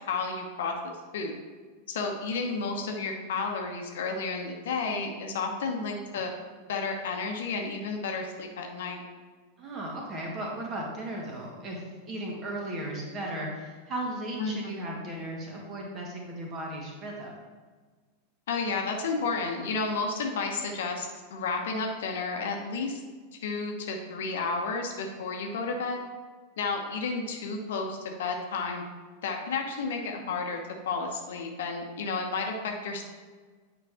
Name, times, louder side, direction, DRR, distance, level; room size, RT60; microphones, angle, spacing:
voice 1, 0.1-0.7 1.1-1.4 1.9-6.3 6.7-9.0 14.4-14.8 18.5-23.0 23.4-26.0 26.6-28.8 29.2-30.6 30.8-33.1, left 4 dB, 60° left, 3 dB, 1.0 m, -32 dB
voice 2, 9.6-17.3, right 1 dB, 30° right, -1 dB, 1.9 m, -36 dB
9.0 x 5.2 x 3.6 m, 1.4 s
figure-of-eight pair, 90°, 0 cm